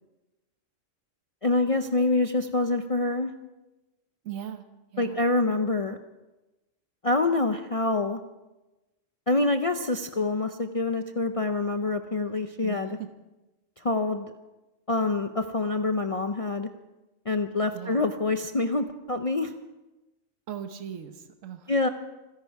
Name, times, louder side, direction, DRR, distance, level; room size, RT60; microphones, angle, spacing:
voice 1, 1.4-3.3 5.0-6.0 7.0-8.2 9.3-13.0 13.8-14.3 14.9-16.7 17.3-19.5 21.7-21.9, left 2 dB, 40° left, 6 dB, 0.5 m, -26 dB
voice 2, 4.2-4.6 4.9-5.2 12.6-13.1 17.7-18.1 20.5-21.7, right 9 dB, 80° right, 7 dB, 1.4 m, -39 dB
26.0 x 11.0 x 4.7 m, 1.1 s
omnidirectional pair, 1.3 m